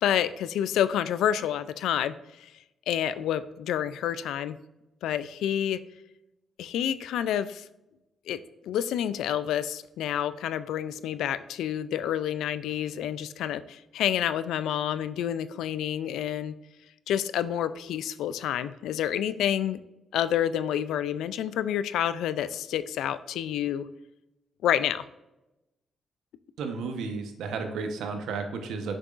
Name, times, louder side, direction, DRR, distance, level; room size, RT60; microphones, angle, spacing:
voice 1, 0.0-2.5 2.9-4.6 5.0-5.8 6.6-7.7 8.3-8.4 8.7-16.5 17.1-19.8 20.1-23.9 24.6-25.0, left 10 dB, 90° left, 14 dB, 0.3 m, -28 dB
voice 2, 26.6-29.0, right 4 dB, 85° right, 5 dB, 0.9 m, -33 dB
6.7 x 5.9 x 2.5 m, 0.95 s
cardioid pair, 80°, 0 cm